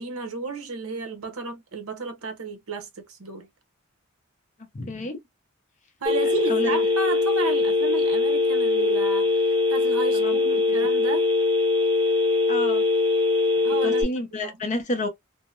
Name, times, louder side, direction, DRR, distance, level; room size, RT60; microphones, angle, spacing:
voice 1, 0.0-3.5 6.0-9.4 9.7-11.3 13.6-14.0 14.3-14.5, right 4 dB, 75° right, 0.8 m, -33 dB
voice 2, 4.7-5.2 6.5-6.8 10.1-10.8 12.5-12.8 13.8-15.1, left 2 dB, 35° left, 0.5 m, -30 dB
Telephone, 6.1-14.0, left 3 dB, 20° right, 0.7 m, -22 dB
2.7 x 2.0 x 2.4 m
head